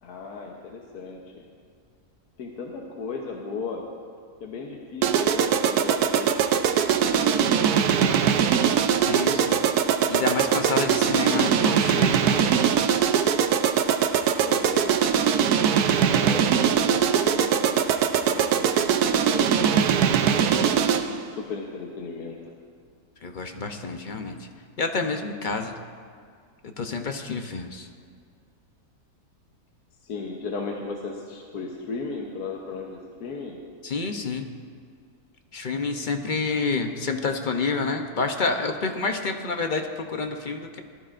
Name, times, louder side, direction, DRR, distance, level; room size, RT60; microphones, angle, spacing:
voice 1, 0.0-1.4 2.4-3.8 4.4-8.2 14.4-15.0 16.1-17.9 18.2-22.4 30.0-33.6, left 4 dB, 80° left, 0 dB, 1.5 m, -36 dB
sound 1, 5.0-21.2, right 8 dB, 85° right, 1.2 m, -21 dB
voice 2, 9.1-9.6 10.1-12.6 23.2-24.5 24.8-25.8 26.6-27.9 33.8-34.5 35.5-40.8, left 4 dB, 45° left, 5 dB, 0.6 m, -28 dB
19.0 x 13.0 x 2.5 m, 2.2 s
omnidirectional pair, 1.6 m